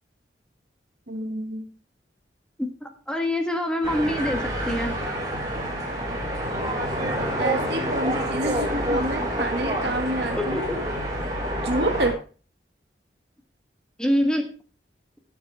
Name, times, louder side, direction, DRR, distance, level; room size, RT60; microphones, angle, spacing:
voice 1, 1.1-1.7 7.4-10.6 11.6-12.2, right 1 dB, 65° right, 5 dB, 2.0 m, -28 dB
voice 2, 2.6-4.4 4.7-4.9 10.4-10.9 14.0-14.5, left 1 dB, 5° left, 4 dB, 1.4 m, -25 dB
sound 1, 3.8-12.1, right 1 dB, 20° right, 4.4 m, -27 dB
18.0 x 7.4 x 3.5 m, 0.37 s
head